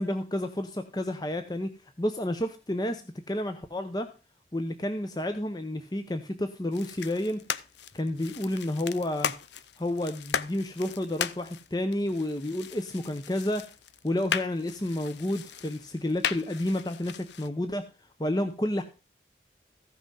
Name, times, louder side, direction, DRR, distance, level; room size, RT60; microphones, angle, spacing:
voice 1, 0.0-1.7 2.0-3.0 3.3-4.1 4.5-7.4 7.9-9.3 9.8-13.7 14.0-17.9 18.2-18.8, left 1 dB, 20° left, 7 dB, 0.8 m, -30 dB
sound 1, 6.7-17.5, left 7 dB, 80° left, 0.7 m, -37 dB
15.0 x 5.9 x 5.4 m, 0.31 s
head